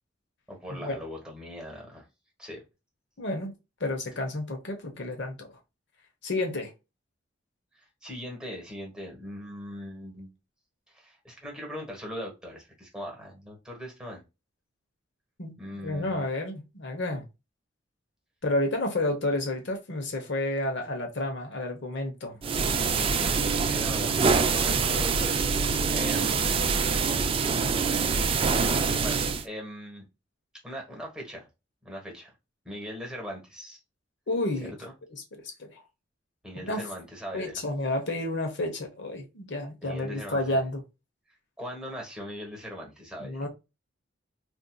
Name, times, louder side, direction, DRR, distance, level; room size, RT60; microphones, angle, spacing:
voice 1, 0.5-2.0 2.4-2.6 7.7-10.3 10.9-14.2 15.6-16.2 22.9-26.7 29.0-30.0 30.6-31.5 31.8-32.3 32.6-33.8 34.8-34.9 36.4-37.6 39.8-40.6 41.6-43.4, equal, 5° right, 1.3 m, -40 dB
voice 2, 3.2-5.5 6.2-6.7 15.4-15.5 15.8-17.2 18.4-22.4 34.3-34.8 35.3-35.8 36.6-36.9 37.3-40.8 43.2-43.5, left 1 dB, 65° left, 1.0 m, -30 dB
sound 1, 22.4-29.4, right 5 dB, 30° right, 0.3 m, -25 dB
4.4 x 2.6 x 2.3 m
head